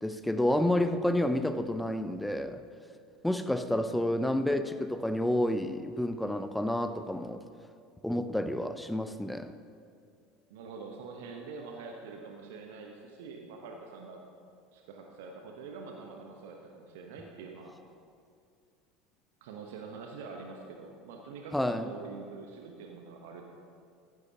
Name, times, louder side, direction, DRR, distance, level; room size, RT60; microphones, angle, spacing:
voice 1, 0.0-2.6 3.2-7.4 8.0-9.5 21.5-21.9, left 1 dB, 5° left, 10 dB, 0.6 m, -29 dB
voice 2, 10.5-14.2 14.7-17.7 19.4-23.4, right 4 dB, 65° right, 2 dB, 1.0 m, -45 dB
15.0 x 11.0 x 2.9 m, 2.3 s
figure-of-eight pair, 70°, 0 cm